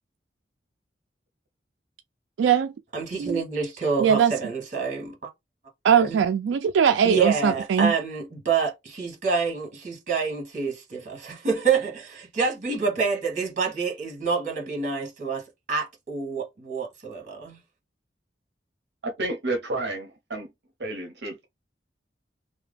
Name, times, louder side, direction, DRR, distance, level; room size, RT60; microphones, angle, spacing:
voice 1, 2.4-2.7 3.2-3.4 4.0-4.3 5.8-7.9, right 7 dB, 90° right, 0.3 m, -20 dB
voice 2, 2.9-5.1 6.0-6.2 7.0-17.6, right 5 dB, 45° right, 1.3 m, -27 dB
voice 3, 19.0-20.5 20.8-21.5, right 2 dB, 65° right, 0.7 m, -31 dB
2.8 x 2.2 x 3.3 m
head